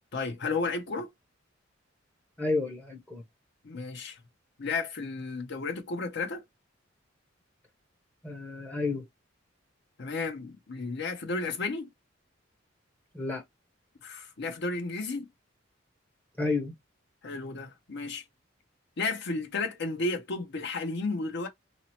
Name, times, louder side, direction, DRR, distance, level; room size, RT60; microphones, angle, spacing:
voice 1, 0.1-1.1 3.6-4.2 4.6-6.4 10.0-11.9 14.0-15.3 17.2-18.2 19.0-21.5, left 3 dB, 60° left, 0.7 m, -33 dB
voice 2, 2.4-3.2 8.2-9.1 13.1-13.4 16.4-16.7, left 3 dB, 10° left, 0.7 m, -31 dB
2.8 x 2.0 x 2.8 m
head